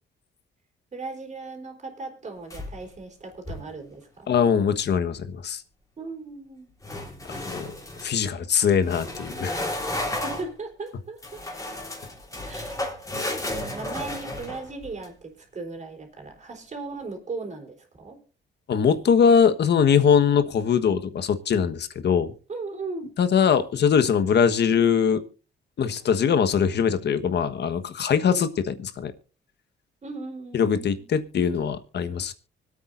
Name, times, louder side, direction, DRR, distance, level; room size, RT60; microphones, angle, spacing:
voice 1, 0.9-4.3 6.0-6.7 10.2-11.2 12.4-12.8 13.5-18.2 22.5-23.1 28.3-28.5 30.0-31.1, right 3 dB, 35° right, 2 dB, 4.0 m, -37 dB
sound 1, 2.5-3.0 3.3-3.7 6.8-8.1 8.8-10.5 11.2-15.1, left 1 dB, 15° left, 3.5 m, -33 dB
voice 2, 4.3-5.6 7.3-7.7 8.0-9.5 18.7-22.3 23.2-25.2 25.8-29.1 30.5-32.3, left 7 dB, 60° left, 10 dB, 1.4 m, -22 dB
25.0 x 8.8 x 2.6 m, 0.36 s
cardioid pair, 90°, 20 cm